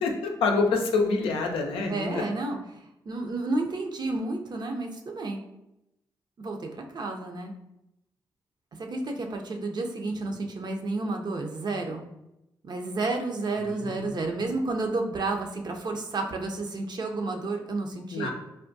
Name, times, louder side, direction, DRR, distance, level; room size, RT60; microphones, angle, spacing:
voice 1, 0.0-2.2 13.6-14.1 18.1-18.3, left 4 dB, 85° left, 2 dB, 0.4 m, -27 dB
voice 2, 1.9-2.6 3.1-5.4 6.4-7.5 8.8-12.1 12.6-18.3, right 3 dB, 50° right, 3 dB, 0.5 m, -31 dB
3.4 x 2.2 x 2.6 m, 0.87 s
supercardioid pair, 45°, 9 cm